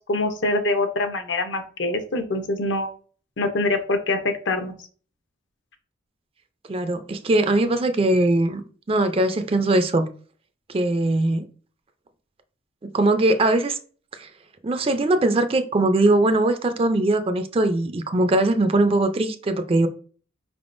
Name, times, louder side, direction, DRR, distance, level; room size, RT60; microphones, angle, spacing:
voice 1, 0.0-2.9 3.4-4.2 4.5-4.7, left 2 dB, 65° left, 0.7 m, -24 dB
voice 2, 6.7-8.6 8.9-10.1 10.7-11.5 12.8-13.8 14.2-14.3 14.6-19.9, right 2 dB, 30° right, 0.4 m, -21 dB
5.1 x 3.5 x 2.5 m
head